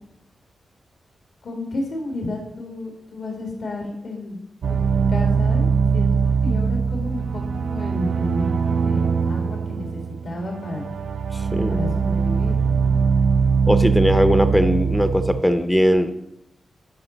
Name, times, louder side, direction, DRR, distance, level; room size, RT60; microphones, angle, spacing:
voice 1, 1.4-4.4 4.7-10.8 11.6-13.0, left 1 dB, 70° left, 0 dB, 1.8 m, -32 dB
sound 1, 4.6-15.4, right 5 dB, 75° right, 0.4 m, -21 dB
voice 2, 11.5-12.0 13.7-16.1, equal, 5° left, 9 dB, 0.4 m, -19 dB
11.0 x 5.0 x 3.9 m, 0.86 s
wide cardioid pair, 140°, 0 cm